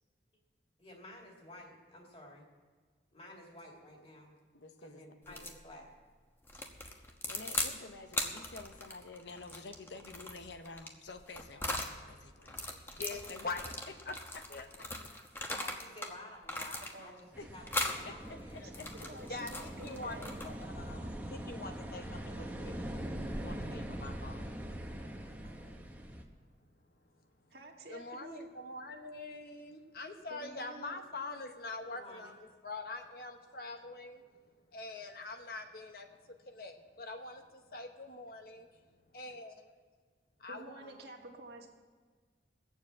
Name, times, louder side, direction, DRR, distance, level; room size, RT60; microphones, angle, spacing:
voice 1, 0.8-2.5 3.1-4.3 4.8-5.9 7.6-7.8 12.9-13.5 15.5-18.6 25.4-25.7 31.9-32.3 40.6-41.1, left 1 dB, 35° left, 0 dB, 2.4 m, -53 dB
sound 1, 5.3-5.6 6.5-7.8 8.1-12.0 12.4-16.1 16.4-17.2 17.7-18.0 18.6-20.7, left 2 dB, 10° left, 1.0 m, -39 dB
voice 2, 6.8-13.0 13.3-13.5 13.9-14.4 14.8-14.9 17.0-17.1 17.4-17.5 17.9-18.9 25.5-25.6, left 3 dB, 85° left, 7 dB, 0.9 m, -50 dB
voice 3, 12.9-13.6 14.1-14.2 14.5-14.7 18.6-18.7 19.3-19.5 19.8-20.2 20.4-24.5 27.9-34.2 34.7-38.6 39.1-39.5 40.4-40.8, left 3 dB, 55° left, 5 dB, 1.0 m, -44 dB
voice 4, 16.9-17.2 19.0-20.3 27.5-28.5 30.3-31.0 40.5-41.7, right 1 dB, 65° right, 1 dB, 1.6 m, -50 dB
sound 2, 17.3-26.2, right 1 dB, 10° right, 1.0 m, -42 dB
17.5 x 7.1 x 7.5 m, 1.5 s
head